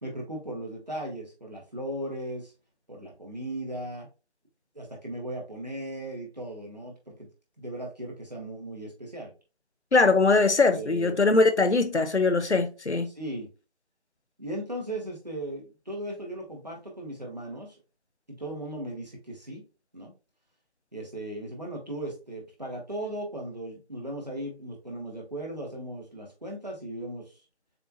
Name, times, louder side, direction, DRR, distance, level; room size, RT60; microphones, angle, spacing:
voice 1, 0.0-2.5 2.9-4.1 4.7-7.3 7.6-9.3 10.3-10.5 10.7-11.2 13.1-13.5 14.4-17.8 18.3-19.6 19.9-20.1 20.9-27.4, right 1 dB, 40° right, 1.7 m, -37 dB
voice 2, 9.9-13.1, left 3 dB, 85° left, 0.9 m, -21 dB
6.8 x 2.8 x 2.6 m
figure-of-eight pair, 175°, 33 cm